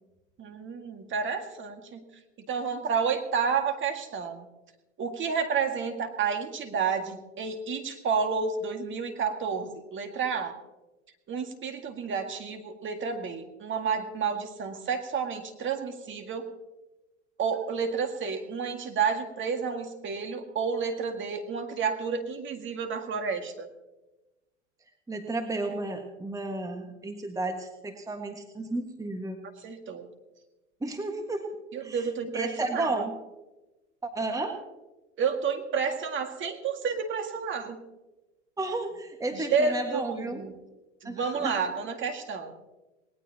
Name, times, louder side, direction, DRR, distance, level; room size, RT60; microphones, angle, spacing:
voice 1, 0.4-2.0 2.5-4.5 5.0-10.6 11.3-16.5 17.4-23.7 29.6-30.1 31.7-33.0 35.2-37.8 39.3-40.5 41.0-42.6, right 6 dB, 30° right, 5 dB, 2.0 m, -30 dB
voice 2, 25.1-29.4 30.8-31.5 31.8-33.2 34.0-34.5 38.6-40.4 41.0-41.6, right 2 dB, 10° right, 4 dB, 1.6 m, -33 dB
19.5 x 19.0 x 2.9 m, 1.1 s
hypercardioid pair, 95°, 36 cm